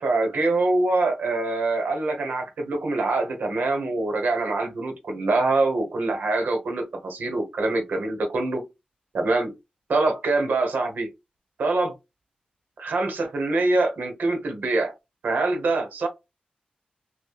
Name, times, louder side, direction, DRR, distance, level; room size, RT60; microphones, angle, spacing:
voice 1, 0.0-8.6 9.1-9.5 9.9-11.1 11.6-11.9 12.8-14.9 15.2-16.1, right 2 dB, 90° right, 4 dB, 1.1 m, -24 dB
6.0 x 2.1 x 2.3 m, 0.22 s
wide cardioid pair, 75°, 3 cm